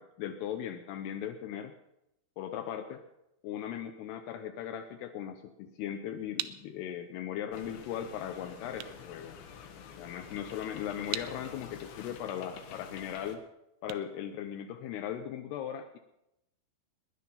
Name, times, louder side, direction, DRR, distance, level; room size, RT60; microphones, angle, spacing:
voice 1, 0.0-1.7 2.4-3.0 3.4-9.4 10.0-13.4 13.8-16.0, left 9 dB, 85° left, 5 dB, 2.3 m, -38 dB
sound 1, 5.7-15.1, right 14 dB, 80° right, 2.9 m, -45 dB
sound 2, 7.5-13.4, left 7 dB, 65° left, 2.6 m, -48 dB
19.5 x 10.5 x 5.6 m, 0.86 s
omnidirectional pair, 5.7 m